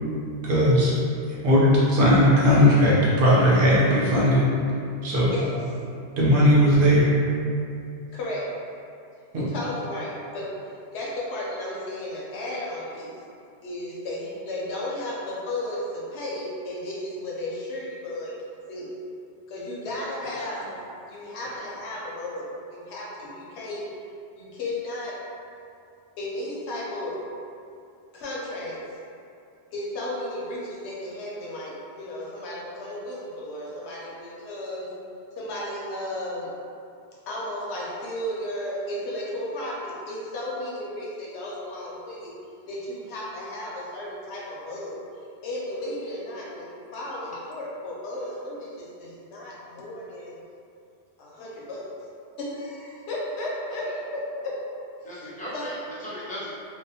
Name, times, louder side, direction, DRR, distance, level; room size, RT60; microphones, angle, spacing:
voice 1, 0.4-0.9 1.4-4.4 5.0-5.3 6.2-7.1 9.3-9.5, equal, 60° right, -7 dB, 0.7 m, -18 dB
voice 2, 8.1-8.5 9.3-10.4 10.9-13.1 13.6-18.3 18.7-19.0 19.5-20.7 21.1-23.8 24.4-25.2 26.2-27.2 28.1-28.8 29.7-34.9 35.4-36.5 37.3-42.3 42.7-45.0 45.4-50.3 51.2-51.9 52.4-54.5 55.0-55.2 55.5-55.7, left 1 dB, 75° left, -5 dB, 0.9 m, -34 dB
voice 3, 19.8-20.8 21.4-21.9 53.8-53.9 55.0-56.5, equal, 10° left, -10 dB, 0.5 m, -39 dB
2.7 x 2.1 x 2.6 m, 2.5 s
omnidirectional pair, 1.1 m